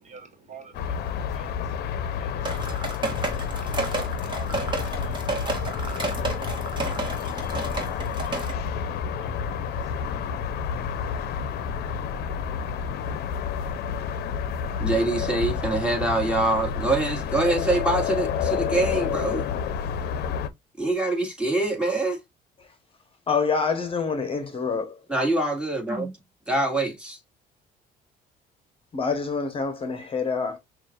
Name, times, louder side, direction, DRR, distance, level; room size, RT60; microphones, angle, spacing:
voice 1, 0.0-12.6, right 5 dB, 45° right, 1.4 m, -51 dB
sound 1, 0.7-20.5, left 7 dB, 70° left, 0.6 m, -29 dB
sound 2, 2.4-8.5, right 2 dB, 25° right, 1.4 m, -31 dB
voice 2, 14.8-19.4 20.8-22.2 25.1-26.1 26.5-27.2, right 2 dB, 5° right, 1.9 m, -25 dB
voice 3, 23.3-25.0 28.9-30.6, left 5 dB, 35° left, 0.9 m, -26 dB
6.0 x 2.4 x 2.4 m
cardioid pair, 110°, 17 cm